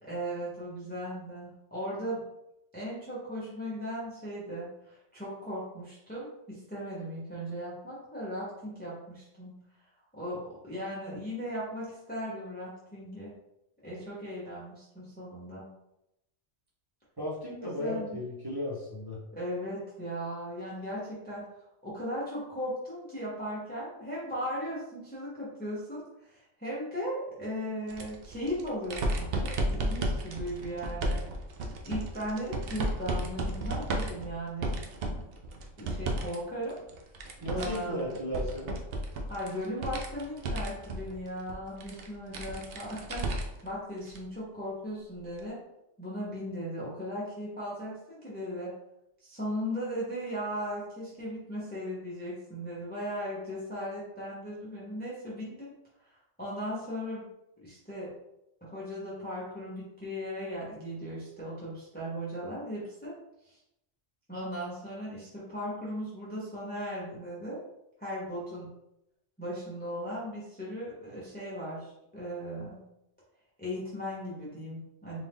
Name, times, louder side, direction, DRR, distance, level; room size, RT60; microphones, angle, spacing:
voice 1, 0.0-2.2 2.7-9.6 10.1-13.3 13.8-15.6 17.8-18.2 19.3-21.5 21.8-31.3 31.8-34.8 35.1-35.3 35.8-36.8 37.5-38.2 39.3-45.6 46.0-48.7 49.2-55.7 56.1-57.2 57.6-58.1 58.6-63.2 63.4-63.6 64.3-67.6 68.0-68.7 69.4-72.8 73.6-75.2, equal, 10° left, -8 dB, 0.9 m, -37 dB
voice 2, 17.2-19.2 37.4-38.8, left 1 dB, 20° right, -7 dB, 1.2 m, -35 dB
sound 1, 27.9-36.4 36.7-43.7 44.1-44.2 45.4-45.5, right 1 dB, 60° right, 0.7 m, -34 dB
3.7 x 2.6 x 3.5 m, 0.85 s
omnidirectional pair, 1.3 m